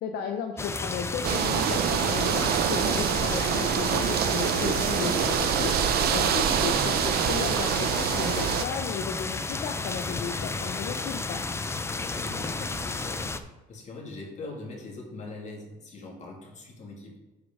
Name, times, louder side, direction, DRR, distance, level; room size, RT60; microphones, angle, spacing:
voice 1, 0.0-11.4, left 7 dB, 70° left, 3 dB, 0.8 m, -34 dB
sound 1, 0.6-13.4, left 3 dB, 15° left, 0.5 m, -32 dB
sound 2, 1.2-8.6, right 9 dB, 65° right, 0.6 m, -25 dB
voice 2, 12.0-17.2, left 2 dB, 45° left, -1 dB, 2.6 m, -41 dB
8.2 x 4.9 x 5.4 m, 1.1 s
cardioid pair, 110°, 17 cm